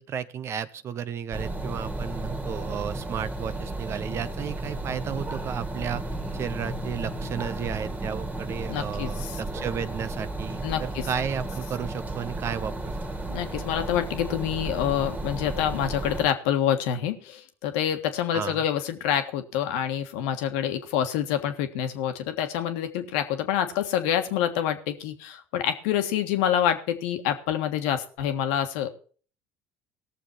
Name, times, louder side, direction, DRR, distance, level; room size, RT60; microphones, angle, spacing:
voice 1, 0.0-6.1 6.3-13.0 18.3-18.6, right 8 dB, 50° right, 13 dB, 0.9 m, -33 dB
sound 1, 1.3-16.3, right 2 dB, 25° right, 2.0 m, -33 dB
voice 2, 8.7-9.4 10.6-11.1 13.3-28.9, left 10 dB, 80° left, 7 dB, 1.5 m, -27 dB
18.5 x 6.9 x 4.6 m, 0.41 s
hypercardioid pair, 80°, 6 cm